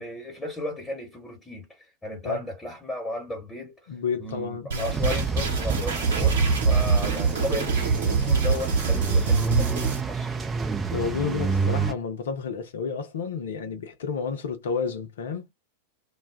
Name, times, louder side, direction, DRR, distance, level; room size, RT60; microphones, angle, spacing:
voice 1, 0.0-10.6, left 2 dB, 15° left, 1.2 m, -35 dB
voice 2, 3.9-5.0 10.9-15.5, left 6 dB, 60° left, 0.7 m, -31 dB
sound 1, 4.7-10.0, right 5 dB, 60° right, 1.0 m, -24 dB
sound 2, 4.9-11.9, right 5 dB, 15° right, 0.5 m, -29 dB
2.3 x 2.2 x 3.4 m
figure-of-eight pair, 90°, 0 cm